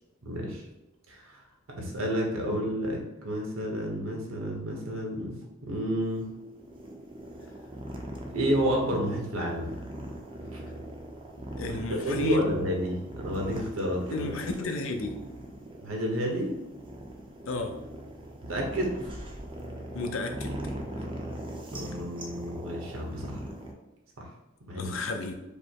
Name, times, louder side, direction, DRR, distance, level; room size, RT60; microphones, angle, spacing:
voice 1, 0.2-0.6 1.1-1.4 1.7-6.3 8.3-9.7 10.5-10.6 11.7-14.3 15.8-16.5 18.4-18.9 21.7-23.4 24.2-24.3 24.7-25.0, equal, 75° right, 0 dB, 1.1 m, -30 dB
sound 1, 6.0-23.7, right 1 dB, 25° right, 0.6 m, -40 dB
voice 2, 11.6-12.5 14.1-15.2 17.5-17.7 19.9-20.5 24.8-25.3, left 2 dB, 75° left, 5 dB, 0.6 m, -32 dB
5.1 x 2.1 x 4.5 m, 0.98 s
head